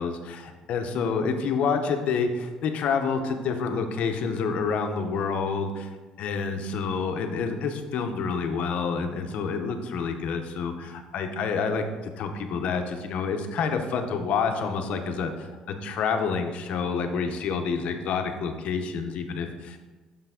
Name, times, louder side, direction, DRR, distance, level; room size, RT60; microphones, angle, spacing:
voice 1, 0.0-5.9 6.2-15.5 15.8-19.8, left 5 dB, 65° left, 6 dB, 0.8 m, -28 dB
6.8 x 5.7 x 3.6 m, 1.3 s
cardioid pair, 115°, 2 cm